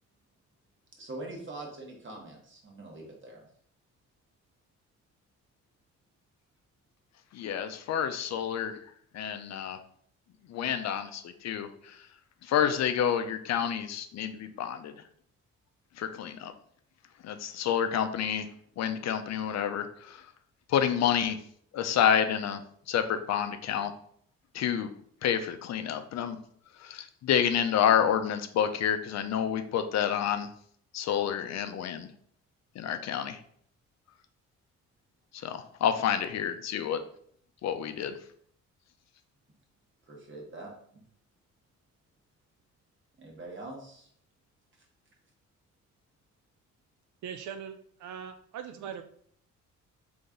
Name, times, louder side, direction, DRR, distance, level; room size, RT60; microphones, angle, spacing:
voice 1, 1.0-3.5 40.1-41.0 43.2-44.1, right 2 dB, 40° right, -1 dB, 1.5 m, -43 dB
voice 2, 7.3-8.8 9.1-9.8 10.5-12.0 12.4-14.9 16.0-16.5 17.2-18.5 18.8-20.2 20.7-21.4 21.7-22.6 22.9-23.9 24.5-24.9 25.2-26.4 26.8-30.5 30.9-32.1 32.8-33.4 35.3-37.0 37.6-38.2, left 9 dB, 60° left, 9 dB, 0.5 m, -29 dB
voice 3, 47.2-49.0, right 8 dB, 70° right, 7 dB, 0.5 m, -40 dB
3.9 x 3.4 x 3.8 m, 0.63 s
cardioid pair, 90°, 30 cm